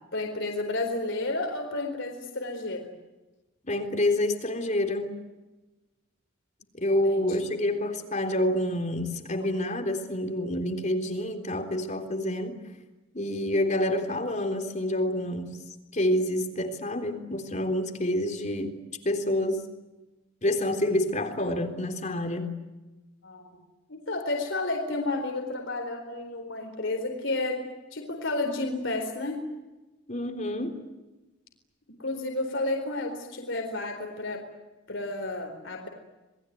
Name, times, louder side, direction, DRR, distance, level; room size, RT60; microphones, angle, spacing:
voice 1, 0.1-2.9 7.0-7.4 23.2-23.6 23.9-27.6 27.9-29.4 32.0-34.4 34.9-35.9, left 2 dB, 60° left, 3 dB, 4.3 m, -31 dB
voice 2, 3.7-5.1 6.8-12.6 13.1-15.5 15.9-18.7 19.0-19.6 20.4-22.6 30.1-30.8, left 1 dB, 35° left, 5 dB, 3.6 m, -28 dB
28.0 x 21.5 x 9.4 m, 1.1 s
head